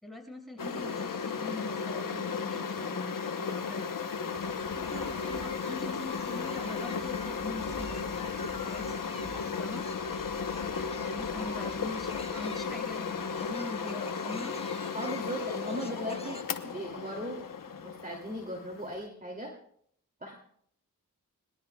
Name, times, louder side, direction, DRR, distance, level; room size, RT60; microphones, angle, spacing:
voice 1, 0.0-3.8 4.7-9.8 10.7-14.5, left 1 dB, ahead, 2 dB, 6.6 m, -43 dB
sound 1, 0.6-19.1, left 6 dB, 80° left, 1.0 m, -35 dB
Thunder, 4.3-14.0, right 2 dB, 90° right, 5.1 m, -51 dB
sound 2, 4.8-16.4, left 2 dB, 20° left, 1.2 m, -47 dB
voice 2, 14.9-17.4 17.8-19.5 20.2-20.3, equal, 25° right, 0 dB, 2.8 m, -38 dB
26.5 x 20.5 x 2.3 m, 0.67 s
cardioid pair, 45°, 33 cm